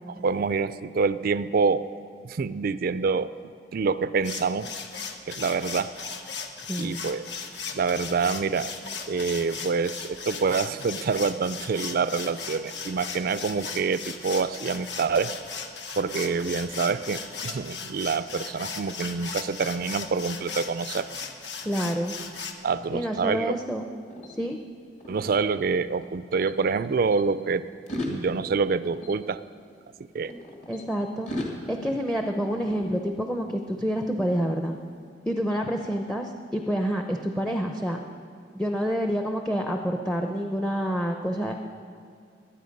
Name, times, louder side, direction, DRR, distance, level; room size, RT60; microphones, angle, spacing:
voice 1, 0.2-1.9 2.2-3.3 3.7-4.7 5.3-5.9 6.8-7.3 7.7-8.7 9.1-15.4 16.0-21.1 22.6-23.6 25.1-27.7 28.1-29.4 30.1-30.3, right 5 dB, 55° right, 15 dB, 0.4 m, -26 dB
sound 1, 4.2-22.5, left 5 dB, 75° left, 1.1 m, -37 dB
voice 2, 6.6-7.0 21.6-22.1 22.9-23.8 24.4-24.6 30.7-31.3 31.7-34.8 35.3-38.0 38.5-41.5, equal, 5° left, 3 dB, 0.6 m, -28 dB
sound 2, 23.2-26.1 26.4-27.2 27.7-30.8 31.3-33.5, left 1 dB, 45° left, 2.2 m, -39 dB
21.5 x 8.9 x 5.3 m, 2.4 s
head